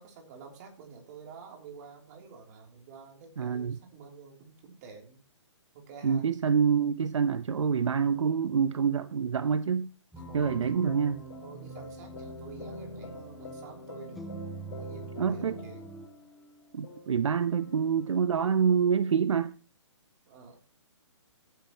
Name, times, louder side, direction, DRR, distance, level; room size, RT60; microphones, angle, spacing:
voice 1, 0.0-5.2 5.7-6.3 10.2-10.7 11.4-14.4 14.8-15.9 20.3-20.5, right 5 dB, 35° right, 3.2 m, -49 dB
voice 2, 3.4-3.8 6.0-9.9 10.3-11.2 15.2-15.5 16.7-19.5, right 6 dB, 75° right, 0.7 m, -26 dB
sound 1, 10.1-16.1, right 4 dB, ahead, 0.8 m, -44 dB
sound 2, 10.2-19.2, left 3 dB, 65° left, 4.1 m, -47 dB
15.0 x 9.3 x 3.0 m
hypercardioid pair, 150°, 16 cm